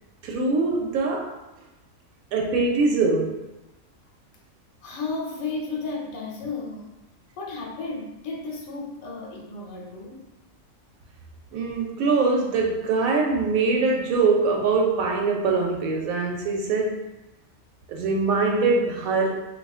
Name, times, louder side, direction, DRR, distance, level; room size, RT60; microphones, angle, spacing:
voice 1, 0.2-1.4 2.3-3.5 11.5-17.0 17.9-19.5, right 3 dB, 80° right, 1.0 m, -23 dB
voice 2, 4.8-6.9 7.4-10.3, left 3 dB, 75° left, 1.1 m, -33 dB
3.8 x 2.6 x 2.3 m
omnidirectional pair, 1.5 m